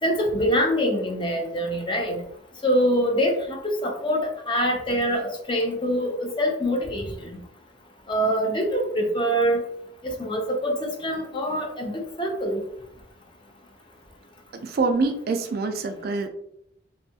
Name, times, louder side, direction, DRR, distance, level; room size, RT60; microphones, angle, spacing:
voice 1, 0.0-2.2 2.6-7.3 8.1-9.6 10.0-12.6, equal, 25° left, 2 dB, 0.5 m, -24 dB
voice 2, 14.6-16.3, right 3 dB, 55° right, 7 dB, 0.3 m, -25 dB
2.6 x 2.3 x 2.6 m, 0.74 s
head